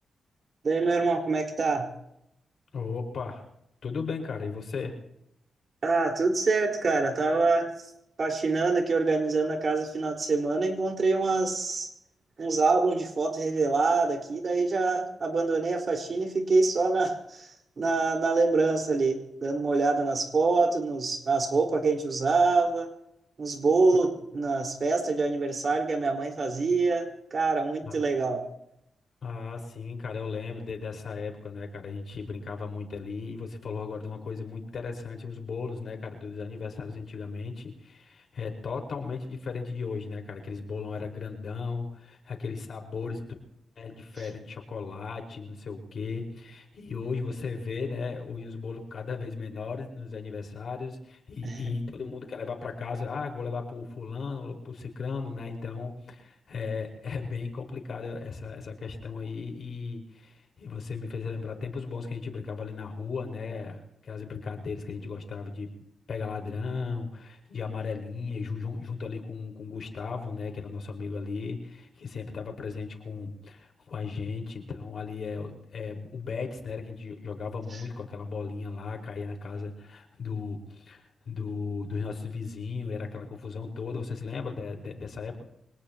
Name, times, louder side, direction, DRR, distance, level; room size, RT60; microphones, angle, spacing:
voice 1, 0.6-1.9 5.8-7.7 8.2-11.9 12.4-17.5 17.8-22.9 23.4-28.4 51.4-51.6, right 3 dB, 50° right, 3 dB, 4.5 m, -25 dB
voice 2, 2.7-3.5 3.8-5.0 27.9-28.0 29.2-43.2 43.8-65.7 66.1-85.5, left 4 dB, 60° left, 2 dB, 4.8 m, -36 dB
25.5 x 19.0 x 3.0 m, 0.79 s
cardioid pair, 80°, 0 cm